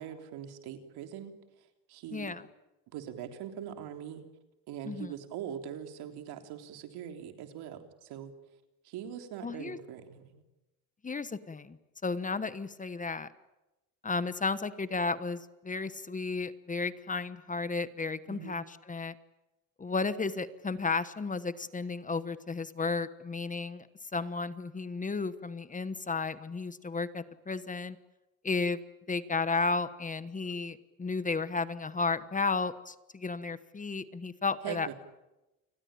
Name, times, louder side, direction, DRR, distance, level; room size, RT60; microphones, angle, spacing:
voice 1, 0.0-1.3 1.9-2.3 2.9-4.2 4.7-8.3 8.8-10.4 18.3-18.6 34.6-34.9, right 9 dB, 80° right, 6 dB, 3.6 m, -42 dB
voice 2, 2.1-2.4 4.8-5.1 9.4-9.8 11.0-11.8 12.0-13.3 14.0-19.1 19.8-23.9 24.1-28.0 28.4-28.8 29.1-34.9, left 4 dB, 20° left, 14 dB, 1.2 m, -33 dB
29.5 x 21.0 x 9.0 m, 0.99 s
cardioid pair, 120°, 38 cm